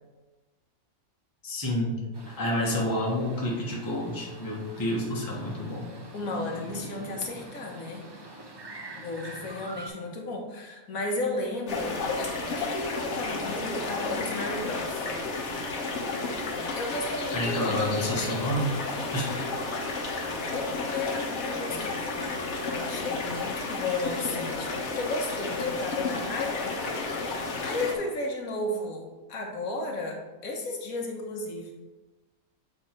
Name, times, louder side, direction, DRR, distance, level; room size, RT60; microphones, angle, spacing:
voice 1, 1.4-2.0 2.4-5.9 17.3-18.8 19.1-19.4, left 1 dB, 15° left, -3 dB, 1.0 m, -29 dB
sound 1, 2.1-9.9, right 1 dB, 35° right, 0.4 m, -44 dB
voice 2, 6.1-8.0 9.0-15.1 16.8-17.7 18.9-19.5 20.5-26.8 27.3-31.7, left 2 dB, 75° left, 1 dB, 1.3 m, -34 dB
sound 2, 11.7-27.9, left 3 dB, 55° left, 1.2 m, -32 dB
7.9 x 3.5 x 4.4 m, 1.2 s
omnidirectional pair, 1.5 m